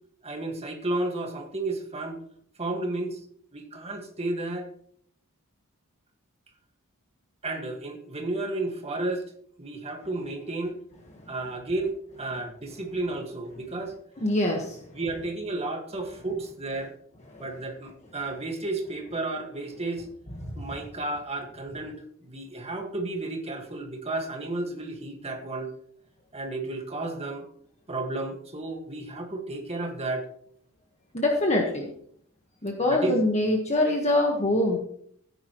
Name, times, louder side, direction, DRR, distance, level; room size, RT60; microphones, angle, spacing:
voice 1, 0.2-2.2 2.6-3.2 3.5-4.7 7.4-9.3 9.6-10.8 11.3-13.9 14.9-16.9 17.4-20.0 20.6-25.7 26.3-27.5 27.9-30.3 32.9-33.2, right 2 dB, 30° right, 3 dB, 1.8 m, -32 dB
voice 2, 14.2-14.8 17.3-17.4 20.4-20.7 31.1-31.9 32.6-34.8, left 1 dB, 30° left, 0 dB, 1.5 m, -24 dB
14.5 x 10.0 x 3.1 m, 0.65 s
head